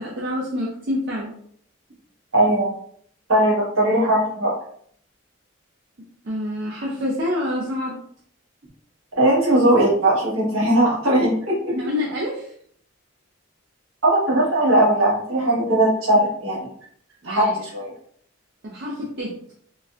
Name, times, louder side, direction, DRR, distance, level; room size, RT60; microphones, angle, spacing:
voice 1, 0.0-1.3 6.2-8.0 11.7-12.5 17.2-17.6 18.6-19.3, left 1 dB, 50° right, -4 dB, 0.5 m, -27 dB
voice 2, 2.3-2.7 3.3-4.6 9.1-11.7 14.0-16.6 17.2-17.9, right 1 dB, 70° right, -5 dB, 1.3 m, -19 dB
3.9 x 2.1 x 2.4 m, 0.63 s
head